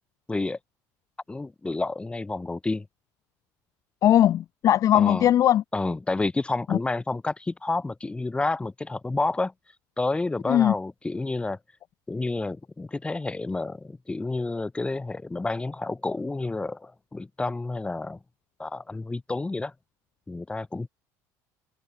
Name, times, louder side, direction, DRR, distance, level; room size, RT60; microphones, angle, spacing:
voice 1, 1.3-2.9 4.9-5.3 5.7-9.5 10.0-11.6 12.1-18.2 18.6-19.7 20.3-20.9, left 3 dB, 15° left, 1.5 m, -29 dB
voice 2, 4.0-5.6 6.7-6.8 10.5-10.7, left 11 dB, 45° left, 0.4 m, -19 dB
supercardioid pair, 95°, 8 cm